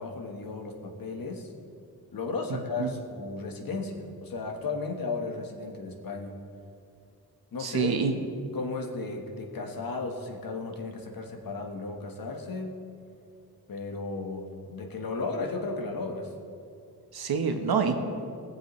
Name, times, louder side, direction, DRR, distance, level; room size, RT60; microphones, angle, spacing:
voice 1, 0.0-1.5 2.1-6.3 7.5-8.0 8.5-12.8 13.7-16.3, left 3 dB, 65° left, 2 dB, 1.4 m, -35 dB
voice 2, 2.5-2.9 7.6-8.1 17.1-18.0, right 5 dB, 85° right, 5 dB, 1.1 m, -27 dB
20.0 x 7.5 x 3.2 m, 2.5 s
wide cardioid pair, 125°, 37 cm